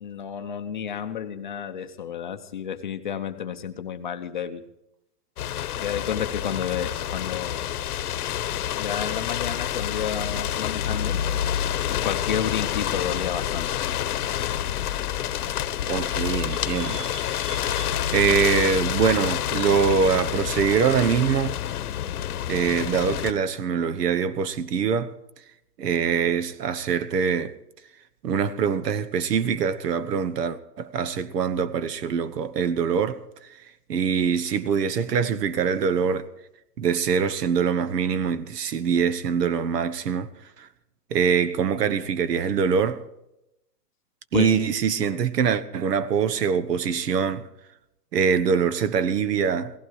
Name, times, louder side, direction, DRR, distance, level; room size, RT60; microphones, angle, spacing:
voice 1, 0.0-4.6 5.8-7.8 8.8-11.2 11.9-13.9 44.3-44.6, left 8 dB, 30° left, 0.6 m, -31 dB
sound 1, 5.4-23.3, left 10 dB, 65° left, 0.9 m, -28 dB
sound 2, 15.2-20.8, right 8 dB, 55° right, 3.4 m, -47 dB
voice 2, 15.9-17.0 18.1-21.6 22.5-25.1 25.8-27.5 28.2-33.2 33.9-36.3 36.8-40.3 40.6-40.7 41.1-43.0 44.3-47.5 48.1-49.7, right 6 dB, 85° right, 1.3 m, -23 dB
16.5 x 15.5 x 4.7 m
hypercardioid pair, 175°, 47 cm